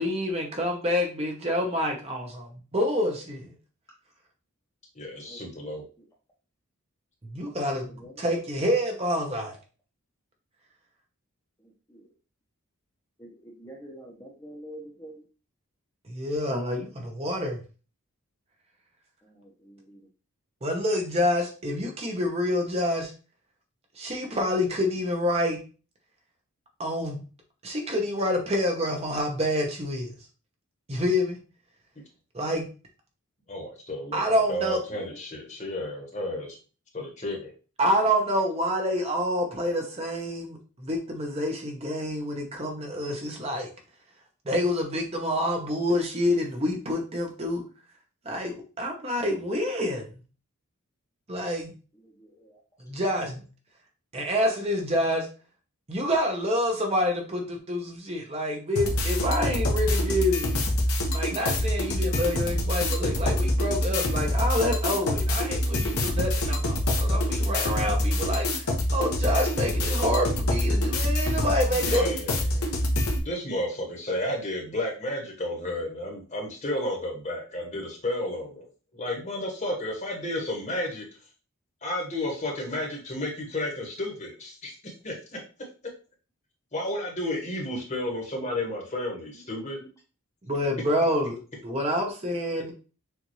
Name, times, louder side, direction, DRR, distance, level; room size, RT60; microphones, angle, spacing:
voice 1, 0.0-3.5 7.3-9.6 16.1-17.6 20.6-23.1 24.0-25.6 26.8-27.2 27.6-30.1 30.9-31.4 32.3-32.7 34.1-34.8 37.8-43.7 44.4-47.6 48.2-50.2 51.3-51.7 52.8-53.4 54.1-55.3 55.9-60.5 61.1-72.0 90.5-92.7, left 1 dB, 25° right, 1 dB, 0.9 m, -27 dB
voice 2, 4.9-5.8 33.5-36.6 36.9-37.5 71.7-72.7 73.2-78.6 78.9-81.1 81.8-85.4 86.7-89.8, left 1 dB, 30° left, 1 dB, 1.2 m, -32 dB
voice 3, 7.9-8.2 11.9-12.1 13.2-15.2 19.2-20.1 34.9-35.2 52.0-52.6 89.8-89.9, right 1 dB, 15° left, -3 dB, 0.9 m, -47 dB
sound 1, 58.7-73.2, left 1 dB, 75° left, 1.1 m, -26 dB
6.5 x 2.6 x 3.1 m, 0.35 s
head